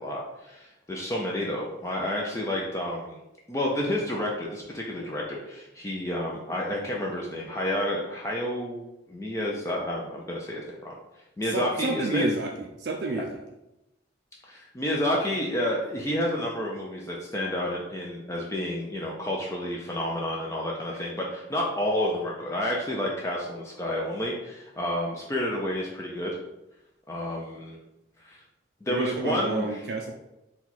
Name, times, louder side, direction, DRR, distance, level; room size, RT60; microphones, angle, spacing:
voice 1, 0.0-3.2 3.5-10.9 11.4-12.3 13.1-13.2 14.5-26.4 27.1-27.8 28.2-28.4 28.8-29.7, left 1 dB, 15° left, -3 dB, 0.4 m, -30 dB
voice 2, 11.4-13.4 28.9-30.1, right 3 dB, 65° right, 1 dB, 0.4 m, -30 dB
4.4 x 2.3 x 4.0 m, 0.92 s
head